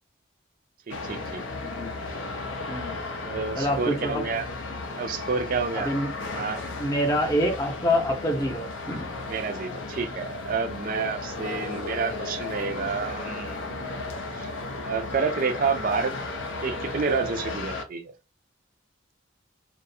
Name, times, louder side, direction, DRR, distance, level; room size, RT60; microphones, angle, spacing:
sound 1, 0.9-17.8, left 3 dB, 85° left, 0.5 m, -35 dB
voice 1, 0.9-1.4 3.2-4.5 5.0-5.9 6.3-6.6 9.3-14.1 14.4-14.5 14.8-16.1 16.6-18.1, right 5 dB, 45° right, 0.4 m, -29 dB
voice 2, 1.6-2.2 2.7-3.0 3.6-4.2 5.7-6.1 6.8-9.1, equal, 15° left, 0.6 m, -26 dB
2.3 x 2.0 x 2.6 m
head